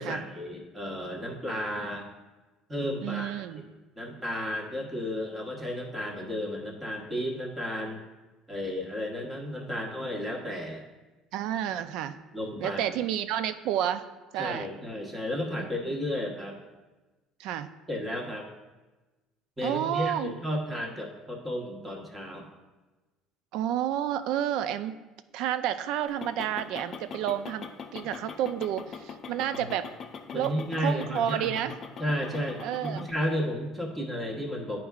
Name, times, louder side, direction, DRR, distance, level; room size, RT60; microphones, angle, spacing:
voice 1, 0.0-2.0 2.7-3.4 4.0-8.0 8.5-10.9 12.3-13.0 14.4-16.6 17.9-18.5 19.6-22.5 30.3-31.6 32.0-34.8, equal, 15° right, 0 dB, 1.1 m, -33 dB
voice 2, 3.0-3.6 11.3-12.1 12.6-14.0 14.3-14.7 15.6-15.8 17.4-17.7 19.6-20.3 23.5-24.9 25.3-29.9 30.3-31.7 32.6-33.1, right 10 dB, 65° right, 12 dB, 0.3 m, -30 dB
sound 1, 26.1-33.1, left 6 dB, 35° left, 0.5 m, -42 dB
11.0 x 4.6 x 2.4 m, 1.2 s
cardioid pair, 145°, 0 cm